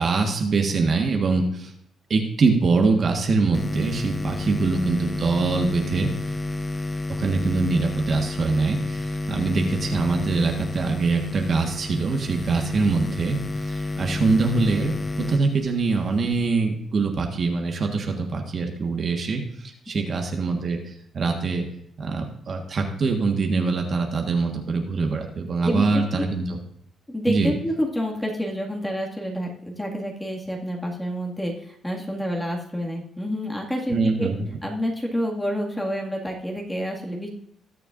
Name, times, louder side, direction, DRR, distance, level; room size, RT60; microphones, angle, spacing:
voice 1, 0.0-1.7 2.1-6.1 7.1-21.6 22.0-26.6 27.3-27.5 33.9-34.4, right 4 dB, 50° right, 3 dB, 1.5 m, -24 dB
sound 1, 3.5-16.5, left 2 dB, 25° left, 0.6 m, -30 dB
voice 2, 25.6-26.3 27.1-34.3 34.6-37.3, equal, 10° left, -1 dB, 2.1 m, -28 dB
20.0 x 6.7 x 2.6 m, 0.70 s
cardioid pair, 90°, 0 cm